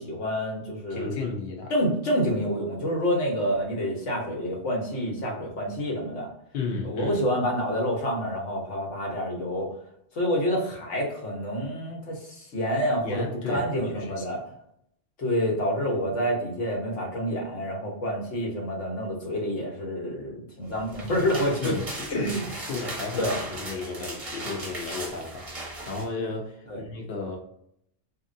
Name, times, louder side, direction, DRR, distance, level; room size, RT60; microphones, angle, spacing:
voice 1, 0.0-1.2 1.7-6.3 6.8-9.7 10.1-14.4 15.2-21.8 22.1-22.4 23.2-23.4 26.7-26.8, equal, 85° left, -1 dB, 1.3 m, -28 dB
voice 2, 0.9-1.7 6.5-7.2 13.0-14.3 21.6-27.4, left 4 dB, 65° left, 0 dB, 0.8 m, -34 dB
sound 1, 20.7-26.1, right 2 dB, 35° right, 0.8 m, -37 dB
2.9 x 2.6 x 2.5 m, 0.74 s
omnidirectional pair, 1.2 m